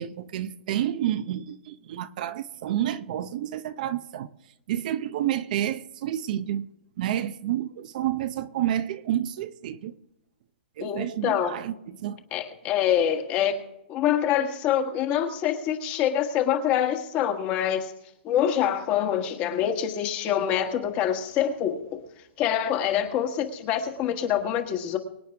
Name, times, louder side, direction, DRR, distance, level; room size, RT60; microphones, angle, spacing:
voice 1, 0.0-4.3 4.7-6.7 7.0-9.9 10.8-12.2, right 11 dB, 45° right, 0.7 m, -29 dB
voice 2, 10.8-11.6 12.3-13.6 13.9-17.9 18.2-22.0 22.4-25.0, left 9 dB, 25° left, 1.5 m, -25 dB
24.5 x 9.2 x 3.5 m
hypercardioid pair, 160°, 6 cm